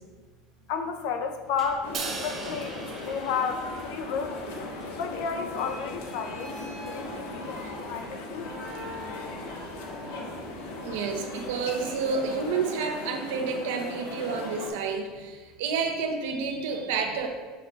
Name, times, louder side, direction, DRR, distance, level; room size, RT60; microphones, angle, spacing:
voice 1, 0.7-4.4 5.0-8.6, left 6 dB, 65° left, 6 dB, 0.8 m, -32 dB
sound 1, 1.4-12.3, equal, 5° left, 2.3 m, -47 dB
sound 2, 1.8-14.7, left 2 dB, 90° left, 1.6 m, -38 dB
Crash cymbal, 1.9-4.3, right 4 dB, 25° right, 1.3 m, -38 dB
voice 2, 10.7-17.3, right 5 dB, 85° right, 3 dB, 1.2 m, -30 dB
7.0 x 6.6 x 3.9 m, 1.4 s
cardioid pair, 155°, 0 cm